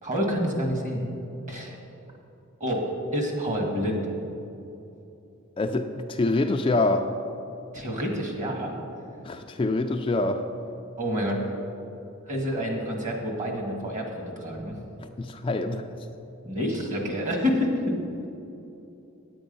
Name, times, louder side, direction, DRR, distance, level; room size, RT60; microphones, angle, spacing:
voice 1, 0.0-1.1 1.5-1.8 2.6-2.9 3.1-4.0 7.7-8.7 11.0-11.4 12.3-14.7 16.4-18.0, equal, 35° right, 0 dB, 1.8 m, -28 dB
voice 2, 5.6-7.1 9.2-10.4 15.0-15.9, left 2 dB, 25° left, 5 dB, 0.3 m, -25 dB
9.2 x 8.8 x 5.3 m, 2.8 s
head